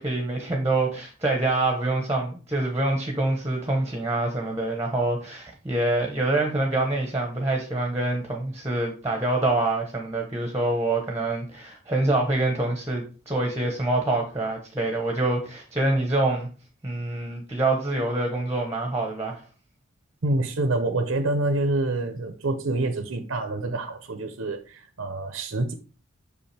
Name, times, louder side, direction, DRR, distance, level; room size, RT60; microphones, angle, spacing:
voice 1, 0.0-16.5 16.8-19.4, right 2 dB, 15° right, 0.9 m, -26 dB
voice 2, 20.2-25.7, right 2 dB, 70° right, 0.7 m, -27 dB
6.5 x 5.4 x 3.3 m
head